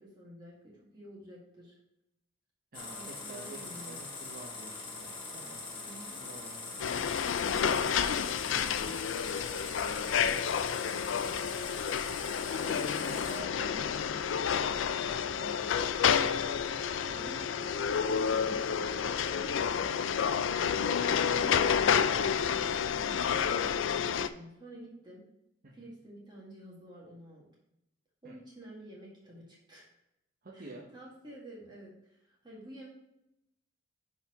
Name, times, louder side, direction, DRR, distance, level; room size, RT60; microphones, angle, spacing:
voice 1, 0.0-1.8 2.9-4.0 5.8-6.2 7.4-11.3 12.9-13.6 17.1-25.2 25.7-27.5 28.2-29.9 30.5-32.9, right 1 dB, 25° right, -5 dB, 1.8 m, -50 dB
sound 1, 2.7-13.4, left 3 dB, 25° left, 1.6 m, -43 dB
voice 2, 2.7-5.6 6.1-6.8 7.6-7.9 12.7-13.9 14.1-16.0 16.6-17.7 25.6-25.9 28.2-28.3 30.4-30.9, right 2 dB, 50° right, -2 dB, 1.0 m, -49 dB
sound 2, 6.8-24.3, left 7 dB, 70° left, 0.4 m, -30 dB
11.0 x 4.3 x 3.0 m, 0.85 s
head